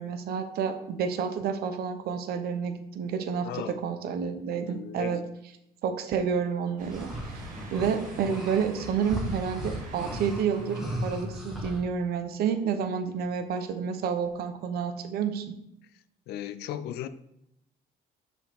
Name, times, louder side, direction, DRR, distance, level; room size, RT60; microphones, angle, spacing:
voice 1, 0.0-5.2 5.8-7.1 7.7-15.4, right 7 dB, 65° right, 0.8 m, -29 dB
voice 2, 3.4-3.8 4.7-5.3 16.3-17.1, left 10 dB, 75° left, 0.5 m, -36 dB
sound 1, 6.8-11.8, equal, ahead, 1.5 m, -36 dB
sound 2, 6.8-12.3 12.8-12.9 14.3-14.4, right 2 dB, 50° right, 1.7 m, -47 dB
7.1 x 5.6 x 3.6 m
cardioid pair, 110°, 17 cm